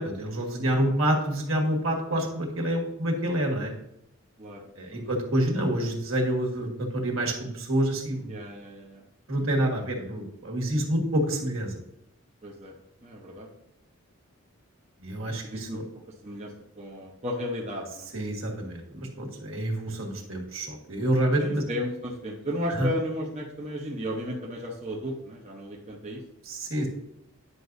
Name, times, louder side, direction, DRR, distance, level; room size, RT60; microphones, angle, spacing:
voice 1, 0.0-3.7 4.8-8.4 9.3-11.8 15.0-15.8 18.1-21.6 22.7-22.9 26.4-26.9, right 1 dB, 65° right, 0 dB, 1.7 m, -27 dB
voice 2, 0.6-1.0 4.4-4.6 4.9-5.1 8.3-9.0 12.4-12.7 13.0-13.5 15.4-15.8 16.2-18.1 21.4-26.2, left 1 dB, 30° right, -2 dB, 0.9 m, -34 dB
9.7 x 5.9 x 2.7 m, 0.83 s
head